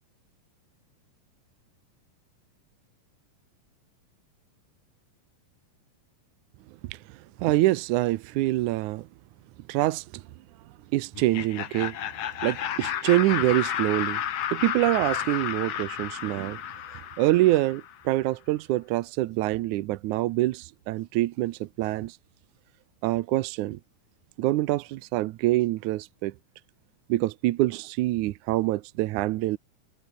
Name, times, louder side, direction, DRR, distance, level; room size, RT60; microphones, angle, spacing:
voice 1, 6.8-9.1 9.7-10.2 10.9-12.0 12.4-14.2 14.5-16.6 17.2-22.2 23.0-23.8 24.4-26.3 27.1-29.6, right 17 dB, 75° right, 1.9 m, -25 dB
Laughter, 11.1-17.9, left 10 dB, 55° left, 2.2 m, -32 dB
omnidirectional pair, 4.0 m